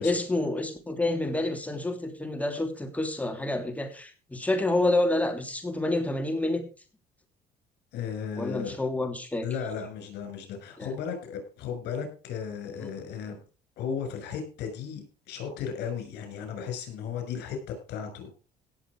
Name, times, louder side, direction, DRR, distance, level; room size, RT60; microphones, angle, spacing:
voice 1, 0.0-6.6 8.4-9.5 10.8-10.9, left 2 dB, 10° left, 5 dB, 3.0 m, -28 dB
voice 2, 7.9-8.8 9.4-13.4 13.8-18.3, left 7 dB, 80° left, 6 dB, 6.0 m, -35 dB
17.0 x 7.5 x 4.9 m, 0.36 s
cardioid pair, 110°, 17 cm